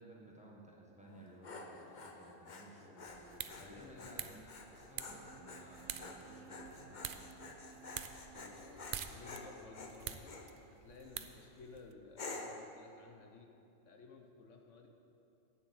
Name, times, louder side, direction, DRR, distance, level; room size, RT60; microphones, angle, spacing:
voice 1, 0.0-7.6, right 1 dB, 5° right, -3 dB, 1.6 m, -57 dB
Dog, 1.1-10.5 11.0-11.5 12.2-12.7, left 3 dB, 40° left, 0.9 m, -50 dB
sound 1, 3.1-11.9, right 8 dB, 60° right, 0.6 m, -48 dB
voice 2, 3.6-4.2 8.3-13.5 13.8-14.9, left 4 dB, 80° left, 3 dB, 1.3 m, -56 dB
sound 2, 5.1-11.1, right 7 dB, 90° right, 1.1 m, -60 dB
11.0 x 6.2 x 8.0 m, 2.8 s
omnidirectional pair, 1.3 m